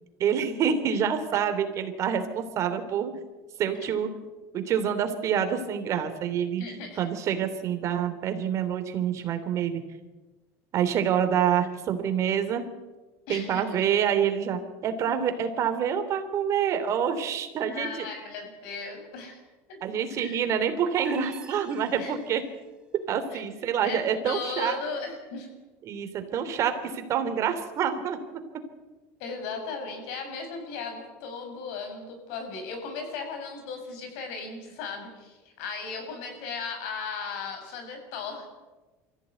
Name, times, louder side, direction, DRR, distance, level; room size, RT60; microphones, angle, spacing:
voice 1, 0.2-3.1 3.6-4.1 4.5-6.6 7.0-9.8 10.7-12.6 13.3-17.9 19.8-22.4 23.1-24.8 25.8-28.2, right 8 dB, 45° right, 8 dB, 3.1 m, -27 dB
voice 2, 6.6-7.1 13.3-13.6 17.7-19.4 19.7-19.8 20.2-20.5 22.0-22.1 23.3-23.4 23.8-25.5 29.2-38.5, left 4 dB, 75° left, 4 dB, 6.9 m, -36 dB
sound 1, 21.0-22.6, right 4 dB, 10° right, 1.9 m, -45 dB
23.5 x 15.0 x 9.3 m, 1.2 s
supercardioid pair, 130°, 7 cm